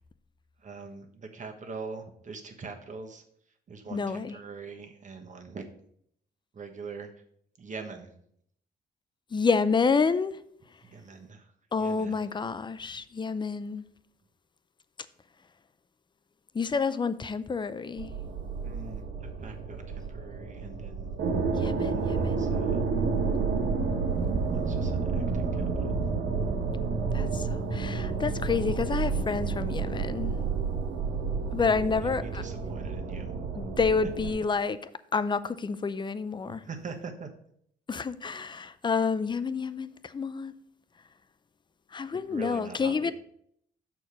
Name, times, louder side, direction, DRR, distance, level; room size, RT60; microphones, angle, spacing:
voice 1, 0.6-3.2 3.7-5.7 6.5-7.1 7.6-8.1 10.8-11.5 11.8-12.2 18.6-21.1 21.8-22.8 24.5-26.0 32.0-33.3 36.5-37.3 42.3-43.1, right 4 dB, 40° right, 1.3 m, -43 dB
voice 2, 3.9-4.4 9.3-10.4 11.7-13.8 16.5-18.1 21.6-22.2 27.1-30.4 31.5-32.4 33.5-34.8 35.1-36.6 37.9-40.5 41.9-43.1, left 5 dB, 25° left, 0.5 m, -29 dB
sound 1, 18.0-34.3, right 4 dB, 80° right, 1.5 m, -30 dB
6.5 x 4.5 x 5.6 m
cardioid pair, 90°, 20 cm